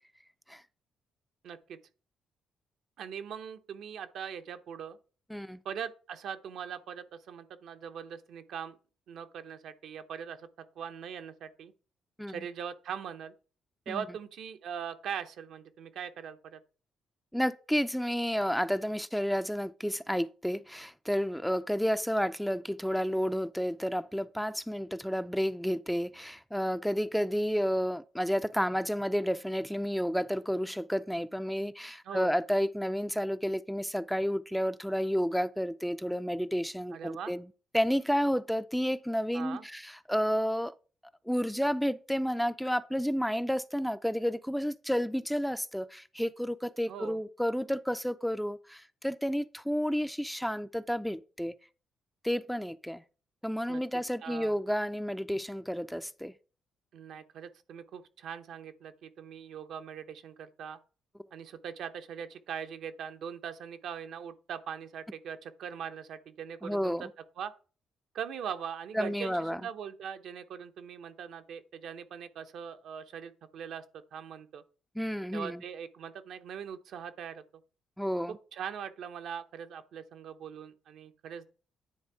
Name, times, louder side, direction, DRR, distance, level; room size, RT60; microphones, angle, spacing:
voice 1, 1.4-1.8 3.0-5.0 5.6-8.8 9.1-10.5 10.8-11.7 12.3-13.3 13.9-16.6 32.0-32.4 36.9-37.3 39.3-39.6 46.9-47.2 53.7-54.6 56.9-60.8 61.3-67.1 67.4-67.5 68.1-74.6 75.3-77.4 78.3-81.5, right 8 dB, 75° right, 0.8 m, -41 dB
voice 2, 17.3-37.4 37.7-40.7 41.3-51.5 52.2-53.0 53.4-56.3 66.6-67.1 68.9-69.6 75.0-75.6 78.0-78.4, equal, ahead, 0.4 m, -31 dB
9.6 x 3.5 x 4.7 m
cardioid pair, 90°, 0 cm